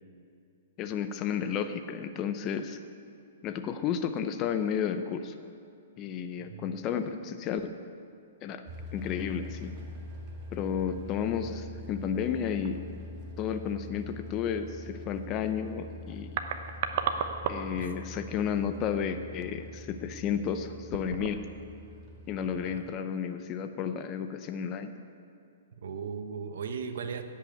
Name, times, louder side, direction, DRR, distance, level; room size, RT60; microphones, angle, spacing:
voice 1, 0.8-2.8 3.4-5.3 6.0-7.7 8.4-8.6 8.9-9.7 10.5-12.8 13.4-16.4 17.5-21.4 22.3-24.9, left 7 dB, 25° left, 9 dB, 0.7 m, -32 dB
voice 2, 6.4-6.8 17.7-18.0 22.5-22.8 25.8-27.2, right 6 dB, 70° right, 8 dB, 1.2 m, -38 dB
sound 1, 8.7-22.8, left 1 dB, 30° right, 1.8 m, -44 dB
sound 2, 10.9-11.2 11.5-11.6 12.3-12.8 15.8-15.9 16.1-17.9 18.1-18.3 19.0-19.3 19.8-20.0 20.8-21.6 21.9-22.0, right 7 dB, 45° right, 0.9 m, -35 dB
17.0 x 5.7 x 8.7 m, 2.6 s
hypercardioid pair, 160°, 0 cm